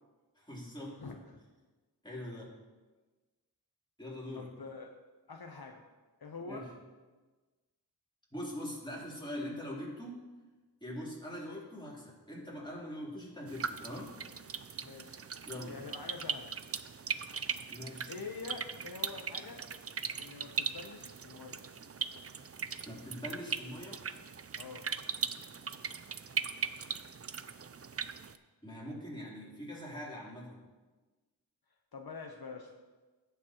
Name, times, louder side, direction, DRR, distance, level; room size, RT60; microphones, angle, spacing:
voice 1, 0.3-1.0 2.0-2.6 4.0-4.5 6.4-6.7 8.3-10.2 10.8-14.1 15.5-15.8 17.7-18.1 22.8-24.1 28.6-30.6, equal, 10° left, -6 dB, 3.4 m, -42 dB
voice 2, 1.0-1.4 4.3-4.9 5.3-5.8 6.2-6.7 14.8-15.2 15.7-16.5 18.1-19.6 20.2-21.6 24.6-24.9 31.9-32.7, left 4 dB, 65° left, 2 dB, 0.9 m, -45 dB
sound 1, 13.5-28.4, right 6 dB, 35° right, 0.4 m, -39 dB
16.5 x 7.2 x 3.0 m, 1.2 s
wide cardioid pair, 70°, 40 cm